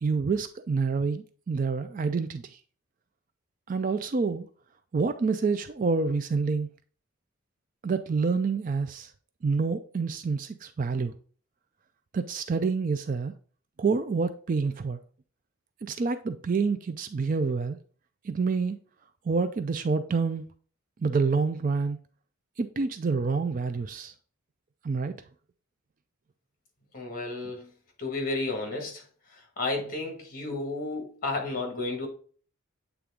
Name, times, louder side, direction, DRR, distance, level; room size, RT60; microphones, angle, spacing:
voice 1, 0.0-2.6 3.7-4.5 4.9-6.7 7.8-9.1 9.4-11.1 12.1-13.3 13.8-15.0 15.8-17.8 18.2-18.8 19.3-20.5 21.0-22.0 22.6-24.1 24.8-25.1, right 4 dB, 40° right, 0.3 m, -27 dB
voice 2, 26.9-27.7 28.0-29.0 29.3-32.1, left 2 dB, 40° left, 1.7 m, -32 dB
8.4 x 3.4 x 3.6 m
head